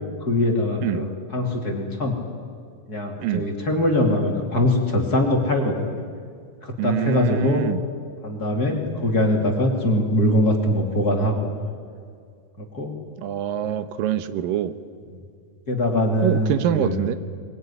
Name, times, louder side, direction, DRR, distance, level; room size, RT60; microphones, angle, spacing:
voice 1, 0.0-2.2 2.9-5.8 6.6-7.7 8.2-11.5 12.6-12.9 15.7-17.0, left 1 dB, 30° left, 2 dB, 2.9 m, -22 dB
voice 2, 6.8-7.8 13.2-14.7 16.2-17.2, right 11 dB, 90° right, 11 dB, 2.7 m, -25 dB
22.5 x 22.5 x 9.9 m, 2.2 s
omnidirectional pair, 3.8 m